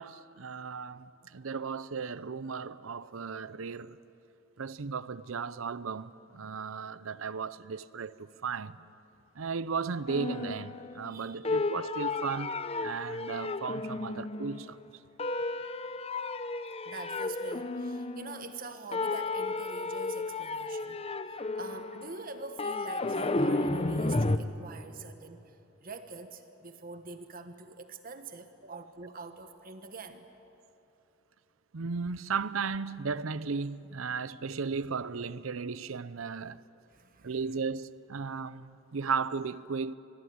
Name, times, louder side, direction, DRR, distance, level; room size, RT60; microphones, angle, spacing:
voice 1, 0.0-4.0 4.6-8.8 9.4-14.8 31.7-36.6 37.2-39.9, right 5 dB, 75° right, 0.7 m, -35 dB
sound 1, 10.1-11.2 11.4-14.8 15.2-18.7 18.9-24.4, left 2 dB, 30° left, 0.8 m, -33 dB
voice 2, 11.1-11.6 16.8-21.0 21.3-25.6 25.8-30.3 36.9-37.3, right 3 dB, 45° right, 1.2 m, -45 dB
26.0 x 21.5 x 9.5 m
head